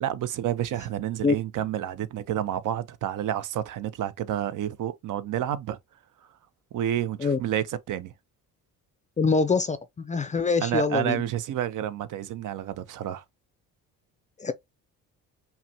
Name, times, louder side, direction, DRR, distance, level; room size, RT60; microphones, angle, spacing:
voice 1, 0.0-5.8 6.7-8.1 10.6-13.2, right 11 dB, 60° right, 0.6 m, -29 dB
voice 2, 9.2-11.2 14.4-14.5, left 4 dB, 20° left, 0.4 m, -24 dB
5.6 x 2.2 x 2.7 m
cardioid pair, 100°, 35 cm